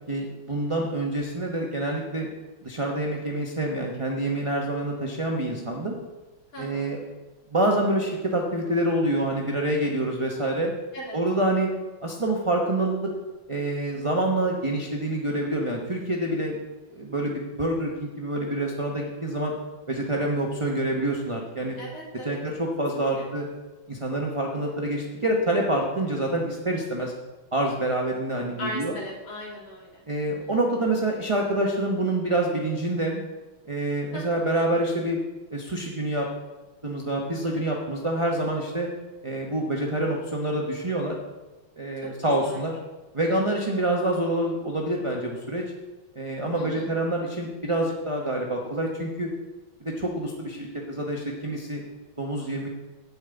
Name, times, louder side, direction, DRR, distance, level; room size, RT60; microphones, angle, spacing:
voice 1, 0.1-2.3 2.6-5.9 6.6-7.0 7.5-10.7 11.1-11.7 12.0-13.1 13.5-16.6 16.9-19.5 19.9-21.8 22.2-23.5 23.9-27.1 27.5-29.0 30.1-33.2 33.7-35.2 35.5-36.3 36.8-38.9 39.2-41.2 41.8-42.8 43.1-45.6 46.1-49.3 49.8-51.8 52.2-52.7, right 1 dB, 25° right, -1 dB, 0.7 m, -27 dB
voice 2, 6.5-6.9 10.9-11.2 21.8-22.4 22.9-23.2 28.6-30.5 34.1-34.2 42.0-42.1 42.4-42.6 46.6-46.9, equal, 70° left, -3 dB, 3.5 m, -38 dB
8.7 x 6.3 x 8.0 m, 1.1 s
omnidirectional pair, 2.3 m